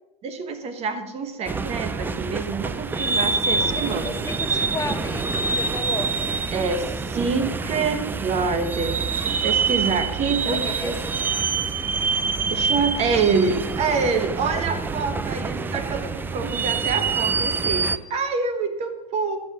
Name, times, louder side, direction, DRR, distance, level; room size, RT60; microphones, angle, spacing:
voice 1, 0.2-4.2 6.5-11.0 12.5-19.4, right 4 dB, 30° right, 8 dB, 1.2 m, -26 dB
sound 1, 1.5-18.0, right 4 dB, 10° right, 0.4 m, -26 dB
voice 2, 4.0-6.1 10.5-11.1, left 3 dB, 15° left, 7 dB, 1.2 m, -33 dB
11.0 x 6.7 x 6.9 m, 1.0 s
hypercardioid pair, 125°, 20 cm